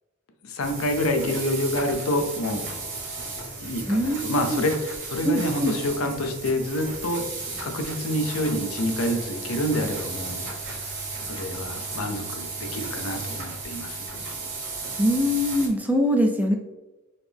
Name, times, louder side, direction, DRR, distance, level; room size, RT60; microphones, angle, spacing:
voice 1, 0.4-2.7 3.6-7.2 7.6-10.4 10.7-10.8 11.2-14.1, left 1 dB, 80° left, 5 dB, 0.6 m, -27 dB
sound 1, 0.6-15.7, right 3 dB, 60° right, 1.3 m, -34 dB
voice 2, 3.9-4.6 5.2-5.7 15.0-16.5, equal, 10° right, 3 dB, 0.3 m, -23 dB
4.0 x 2.9 x 3.4 m, 1.1 s
head